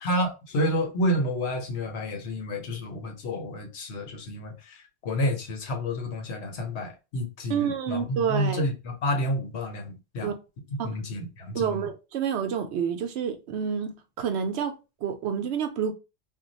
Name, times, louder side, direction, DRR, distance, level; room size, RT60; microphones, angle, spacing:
voice 1, 0.0-10.3 10.8-11.9, equal, 80° left, 1.1 m, -30 dB
voice 2, 7.5-8.6 10.2-10.3 10.8-10.9 11.5-14.7 15.0-15.9, right 7 dB, 80° right, 0.9 m, -28 dB
2.5 x 2.2 x 3.9 m
omnidirectional pair, 1.1 m